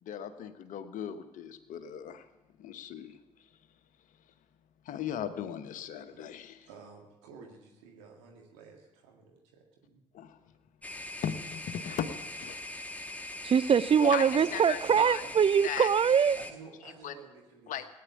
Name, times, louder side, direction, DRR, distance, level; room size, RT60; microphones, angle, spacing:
voice 1, 0.0-2.3 2.6-3.5 4.8-6.7 10.1-10.4 11.2-12.1 12.4-12.6 14.0-15.2 15.6-15.9 17.0-17.1 17.7-17.9, left 9 dB, 60° left, 10 dB, 1.2 m, -38 dB
voice 2, 6.6-10.0 14.2-15.4 16.4-17.8, right 5 dB, 75° right, 1 dB, 1.9 m, -51 dB
sound 1, 10.8-16.5, left 1 dB, 10° left, 1.6 m, -41 dB
voice 3, 13.4-16.4, right 7 dB, 35° right, 17 dB, 0.5 m, -23 dB
17.5 x 9.8 x 8.3 m, 1.0 s
hypercardioid pair, 45°, 15 cm